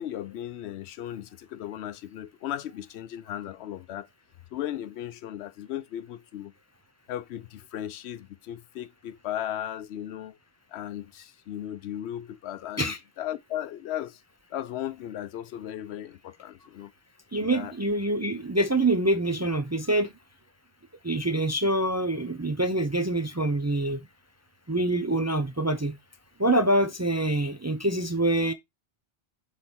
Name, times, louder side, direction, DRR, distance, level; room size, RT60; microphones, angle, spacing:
voice 1, 0.0-4.1 4.5-6.5 7.1-10.4 10.7-14.2 14.5-16.9 17.3-17.7, left 11 dB, 90° left, 0.8 m, -36 dB
voice 2, 17.3-20.1 21.0-24.1 24.7-26.0 26.4-28.5, right 1 dB, 25° right, 0.4 m, -25 dB
7.6 x 3.4 x 4.3 m
omnidirectional pair, 1.1 m